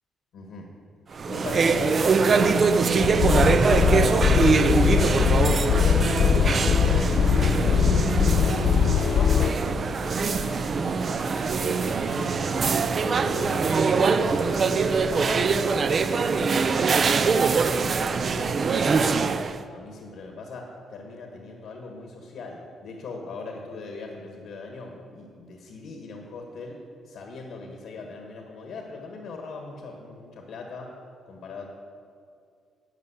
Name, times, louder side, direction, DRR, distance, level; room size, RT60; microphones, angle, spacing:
voice 1, 0.3-0.7 1.2-5.6 5.9-7.3 7.8-8.7 8.9-12.3 12.8-17.5 18.0-26.8 27.1-30.9 31.3-31.7, left 3 dB, 75° left, 1 dB, 1.6 m, -39 dB
sound 1, 1.1-19.6, right 4 dB, 45° right, 0.5 m, -23 dB
sound 2, 2.3-9.0, right 5 dB, 60° right, 0.9 m, -31 dB
sound 3, 3.0-9.5, left 8 dB, 60° left, 0.4 m, -21 dB
12.0 x 5.4 x 8.2 m, 2.3 s
cardioid pair, 90°, 0 cm